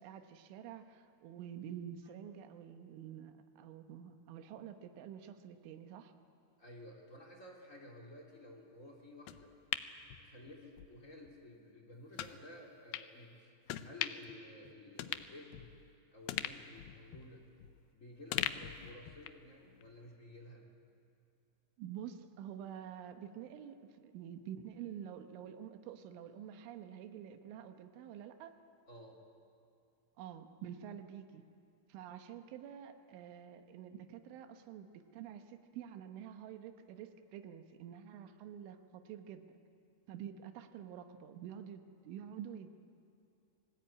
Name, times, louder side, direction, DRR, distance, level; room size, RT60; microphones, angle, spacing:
voice 1, 0.0-6.1 21.8-28.5 30.2-31.4 31.9-39.5 40.1-42.7, right 9 dB, 90° right, 7 dB, 3.6 m, -48 dB
voice 2, 6.6-9.5 10.2-13.5 13.8-15.8 16.1-17.4 17.9-20.7 28.9-29.2, left 1 dB, 20° left, 1 dB, 2.5 m, -53 dB
sound 1, 9.3-10.9 11.3-11.4 12.2-12.4 12.9-13.1 13.7-14.4 14.7-14.8 15.0-15.9 16.3-17.9 18.3-19.5 19.8-19.9, left 13 dB, 85° left, 2.1 m, -41 dB
29.0 x 19.5 x 8.7 m, 2.5 s
omnidirectional pair, 5.4 m